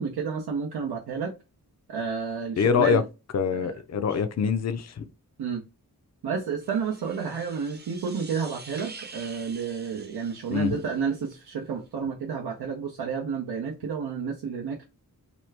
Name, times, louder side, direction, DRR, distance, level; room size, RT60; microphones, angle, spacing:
voice 1, 0.0-1.3 1.9-3.0 3.5-3.7 5.4-5.6 6.2-14.8, right 6 dB, 85° right, 0.6 m, -31 dB
voice 2, 2.6-3.0 3.3-5.1 10.5-10.8, left 6 dB, 45° left, 0.5 m, -24 dB
sound 1, 6.6-11.3, right 4 dB, 25° right, 0.6 m, -47 dB
2.9 x 2.3 x 3.2 m
cardioid pair, 40°, 38 cm